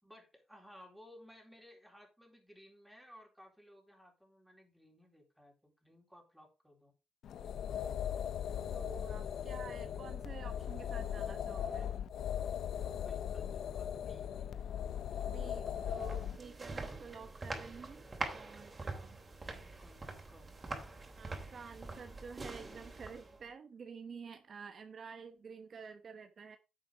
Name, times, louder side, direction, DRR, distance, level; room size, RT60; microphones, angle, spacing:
voice 1, 0.0-6.9 12.9-14.6 19.4-20.5, equal, ahead, 0 dB, 4.2 m, -59 dB
sound 1, 7.2-16.4, left 9 dB, 70° left, 0.8 m, -39 dB
voice 2, 8.7-11.9 15.2-18.0 18.3-19.2 21.2-26.6, right 6 dB, 50° right, 8 dB, 1.0 m, -50 dB
sound 2, 15.7-23.5, right 3 dB, 25° right, 3.2 m, -44 dB
10.0 x 7.7 x 3.6 m, 0.29 s
cardioid pair, 90°, 0 cm